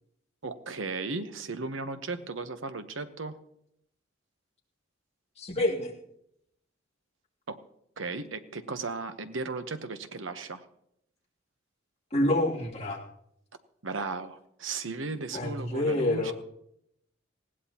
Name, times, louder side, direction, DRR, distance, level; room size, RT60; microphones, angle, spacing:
voice 1, 0.4-3.4 7.5-7.6 8.0-10.7 13.8-16.3, right 3 dB, 85° right, 10 dB, 1.0 m, -36 dB
voice 2, 5.4-5.9 12.1-13.0 15.3-16.3, left 1 dB, 35° left, -3 dB, 2.8 m, -27 dB
19.5 x 16.5 x 2.9 m, 0.75 s
head